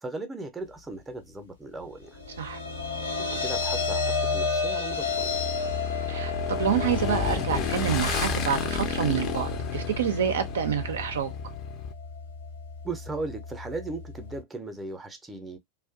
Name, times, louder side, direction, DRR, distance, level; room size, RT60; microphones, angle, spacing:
voice 1, 0.0-2.2 3.0-5.4 12.8-15.6, right 3 dB, 10° right, 0.6 m, -37 dB
sound 1, 2.1-14.4, left 4 dB, 75° left, 1.0 m, -32 dB
Motorcycle / Engine, 4.9-11.9, left 5 dB, 35° left, 0.5 m, -32 dB
voice 2, 6.1-11.3, right 8 dB, 65° right, 0.4 m, -28 dB
2.5 x 2.1 x 2.4 m
figure-of-eight pair, 90°, 0 cm